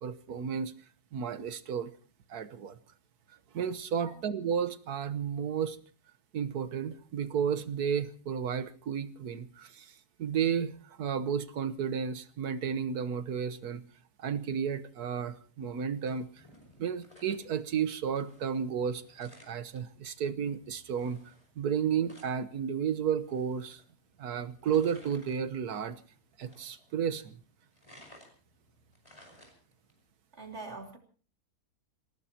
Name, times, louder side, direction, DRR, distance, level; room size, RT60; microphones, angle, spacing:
voice 1, 0.0-0.7 1.1-1.9 2.3-2.8 3.5-5.8 6.3-9.9 10.2-13.8 14.2-16.3 16.8-21.2 21.6-23.8 24.2-26.0 26.4-27.3, right 7 dB, 75° right, 12 dB, 1.6 m, -32 dB
sound 1, 15.6-30.0, equal, 20° left, 5.4 m, -60 dB
voice 2, 30.3-31.0, right 3 dB, 45° right, 3 dB, 3.3 m, -43 dB
27.5 x 17.5 x 2.9 m, 0.39 s
omnidirectional pair, 1.6 m